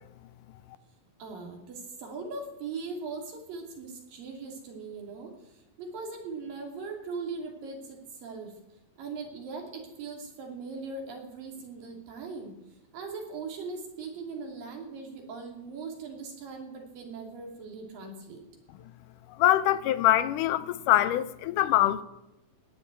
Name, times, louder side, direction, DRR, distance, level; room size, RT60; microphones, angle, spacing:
voice 1, 1.2-8.6 9.0-12.6 12.9-18.4, right 4 dB, 70° right, 4.5 m, -40 dB
voice 2, 19.4-22.0, left 13 dB, 75° left, 2.0 m, -23 dB
17.5 x 6.9 x 9.3 m
omnidirectional pair, 4.2 m